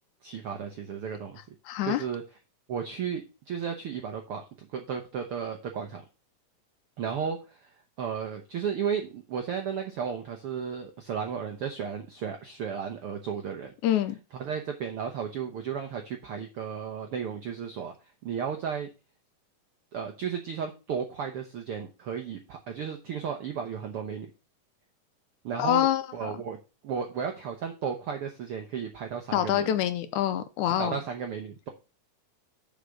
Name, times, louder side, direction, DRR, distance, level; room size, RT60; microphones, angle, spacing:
voice 1, 0.2-1.5 1.8-2.2 2.7-6.0 7.0-13.7 14.3-18.9 19.9-24.3 25.4-26.6 26.8-29.8 30.7-31.7, right 7 dB, 75° right, 1.2 m, -34 dB
voice 2, 1.7-2.0 13.8-14.2 25.6-26.0 29.3-31.0, left 11 dB, 80° left, 1.9 m, -25 dB
6.9 x 5.1 x 6.4 m
omnidirectional pair, 3.8 m